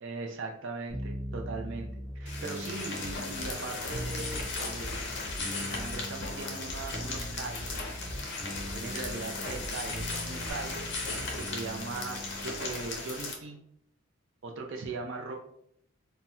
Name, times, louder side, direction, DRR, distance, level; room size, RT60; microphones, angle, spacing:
voice 1, 0.0-1.9 2.1-5.0 5.7-7.8 8.7-10.9 11.4-13.6 14.4-15.4, right 3 dB, 55° right, 1 dB, 0.4 m, -39 dB
sound 1, 0.9-12.8, equal, 10° right, 1.1 m, -41 dB
sound 2, 2.3-13.3, left 3 dB, 55° left, 0.6 m, -37 dB
Bass drum, 3.0-3.5 3.8-4.4 4.8-5.4 5.7-6.3 6.6-7.2 7.6-8.2 8.5-9.1 9.5-10.1 10.4-10.5, equal, 85° right, 0.8 m, -42 dB
4.1 x 2.0 x 2.3 m, 0.69 s
head